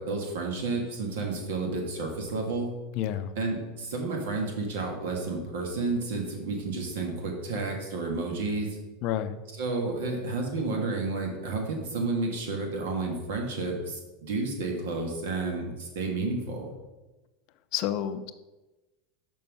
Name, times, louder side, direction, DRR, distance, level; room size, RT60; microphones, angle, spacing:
voice 1, 0.0-2.7 3.4-8.7 9.6-16.7, right 3 dB, 85° right, 2 dB, 1.7 m, -31 dB
voice 2, 2.9-3.3 9.0-9.4 17.7-18.3, left 11 dB, 55° left, 10 dB, 0.5 m, -29 dB
5.6 x 5.4 x 5.4 m, 1.1 s
supercardioid pair, 135°, 0 cm